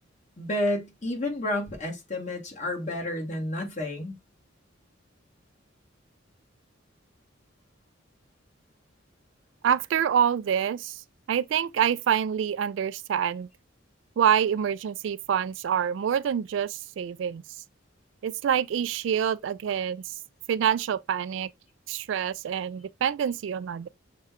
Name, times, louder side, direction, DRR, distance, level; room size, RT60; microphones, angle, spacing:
voice 1, 0.4-4.2, left 1 dB, 35° left, 1.5 m, -30 dB
voice 2, 9.6-11.0 11.3-13.5 14.2-17.4 18.2-20.0 20.5-21.5 21.9-23.9, right 8 dB, 70° right, 0.3 m, -26 dB
6.4 x 2.3 x 3.5 m
head